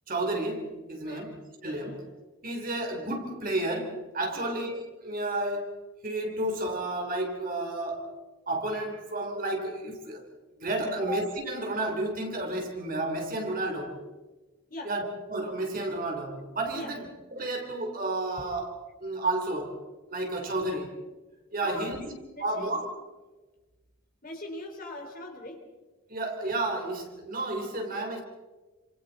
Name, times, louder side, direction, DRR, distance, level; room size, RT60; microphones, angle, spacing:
voice 1, 0.1-1.4 1.6-2.0 2.4-5.8 6.0-8.2 8.5-10.3 10.6-14.0 14.8-18.7 19.0-19.8 20.1-20.9 21.5-22.0 22.4-22.9 26.1-28.2, right 2 dB, 40° right, 3.4 m, -31 dB
voice 2, 21.6-22.1 22.3-22.7 24.2-25.6, left 1 dB, 40° left, 4.0 m, -41 dB
29.0 x 26.5 x 4.1 m
head